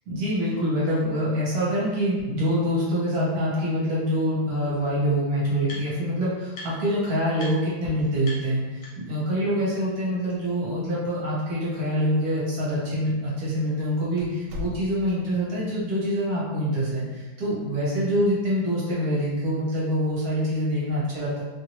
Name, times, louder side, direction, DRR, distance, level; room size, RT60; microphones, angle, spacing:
voice 1, 0.1-21.4, equal, 60° right, -6 dB, 1.2 m, -25 dB
sound 1, 2.2-2.3 2.9-3.0 4.3-4.4 4.6-6.1 6.5-7.0 7.3-7.5 7.8-7.9 8.2-9.2, left 2 dB, 65° left, 1.3 m, -42 dB
sound 2, 10.3-10.9 11.2-11.3 12.0-12.1 12.9-13.1 13.5-13.6 14.2-15.3, left 3 dB, 80° right, 1.2 m, -38 dB
3.0 x 2.6 x 2.9 m, 1.2 s
omnidirectional pair, 2.0 m